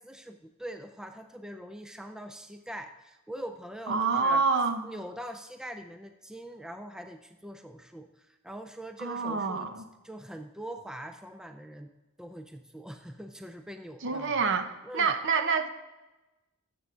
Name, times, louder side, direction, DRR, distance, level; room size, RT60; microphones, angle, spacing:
voice 1, 0.0-4.4 4.8-9.7 10.0-11.9 12.2-14.4 14.8-15.1, right 1 dB, 5° right, 7 dB, 0.4 m, -43 dB
voice 2, 3.9-4.9 9.0-9.9 14.0-15.7, right 4 dB, 55° right, 9 dB, 0.8 m, -27 dB
12.5 x 7.6 x 3.6 m, 1.1 s
head